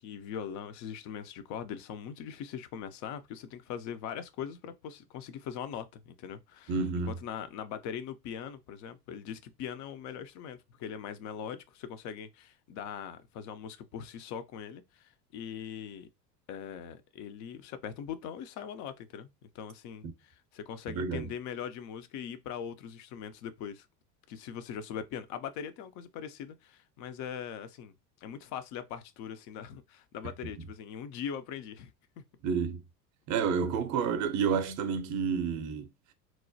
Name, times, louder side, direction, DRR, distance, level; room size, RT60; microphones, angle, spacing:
voice 1, 0.0-6.7 7.1-16.1 16.5-23.9 24.3-27.9 28.2-32.2, left 8 dB, 40° left, 0.4 m, -41 dB
voice 2, 6.7-7.1 21.0-21.2 32.4-32.8 33.3-35.9, right 6 dB, 35° right, 0.6 m, -29 dB
3.0 x 2.1 x 2.6 m
hypercardioid pair, 85°, 50 cm